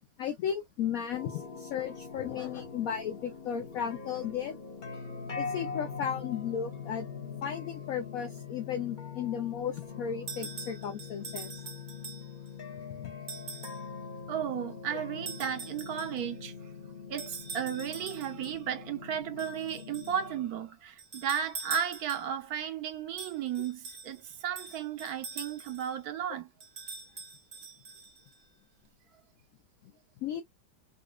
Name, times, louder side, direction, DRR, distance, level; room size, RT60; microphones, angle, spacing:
voice 1, 0.2-4.6 5.4-7.1 7.4-11.5 30.2-30.4, left 8 dB, 70° left, 0.8 m, -34 dB
sound 1, 1.1-20.5, left 5 dB, 40° left, 0.7 m, -43 dB
sound 2, 10.3-12.5 13.3-13.9 15.3-16.3 17.2-18.6 19.4-20.2 21.0-22.4 23.2-26.0 26.6-28.4, right 5 dB, 45° right, 1.0 m, -44 dB
voice 2, 14.3-16.5 17.1-26.5, right 9 dB, 65° right, 1.2 m, -34 dB
3.9 x 2.4 x 2.3 m
omnidirectional pair, 1.9 m